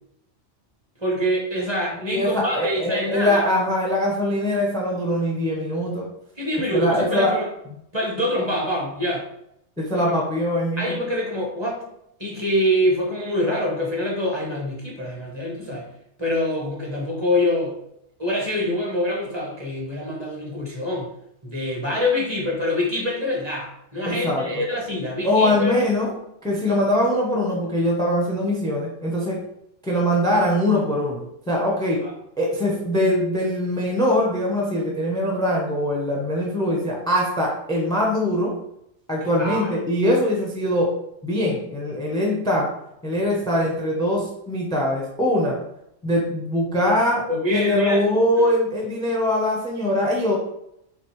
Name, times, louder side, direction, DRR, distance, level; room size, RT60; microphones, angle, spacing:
voice 1, 1.0-3.4 6.4-7.5 7.9-9.2 10.8-11.8 12.2-15.9 16.2-17.8 18.2-21.1 21.4-25.8 32.0-32.1 39.2-39.7 47.3-48.0 48.4-48.5, left 1 dB, 25° right, -2 dB, 1.0 m, -25 dB
voice 2, 2.0-6.1 6.7-7.3 9.8-11.0 24.1-24.4 25.2-26.1 26.4-29.4 29.8-32.0 32.4-38.6 39.1-40.9 41.2-42.7 43.0-45.6 46.0-47.2 47.5-50.4, left 1 dB, 5° left, -2 dB, 0.6 m, -22 dB
6.0 x 2.6 x 3.1 m, 0.79 s
omnidirectional pair, 1.2 m